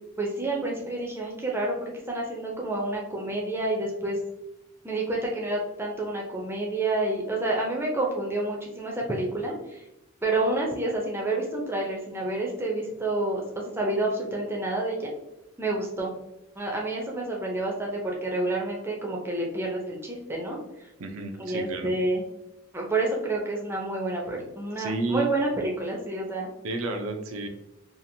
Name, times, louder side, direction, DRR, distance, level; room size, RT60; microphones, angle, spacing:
voice 1, 0.2-4.2 4.8-9.8 10.2-15.1 15.6-16.1 16.6-20.9 21.4-22.2 22.7-26.5, right 2 dB, 10° right, -2 dB, 0.4 m, -29 dB
voice 2, 21.0-21.9 24.8-25.3 26.6-27.5, right 2 dB, 75° right, 5 dB, 0.4 m, -31 dB
2.8 x 2.5 x 2.6 m, 0.92 s
head